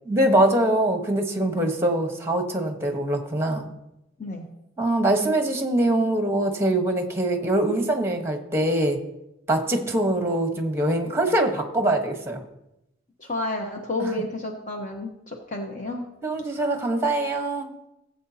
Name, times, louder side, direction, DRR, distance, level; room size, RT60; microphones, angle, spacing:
voice 1, 0.1-3.7 4.8-9.0 9.5-12.4 14.0-14.1 16.2-17.7, right 1 dB, 15° right, 4 dB, 1.2 m, -23 dB
voice 2, 13.2-16.0 16.5-16.7, left 2 dB, 40° left, 1 dB, 1.0 m, -31 dB
17.0 x 7.8 x 2.8 m, 0.88 s
head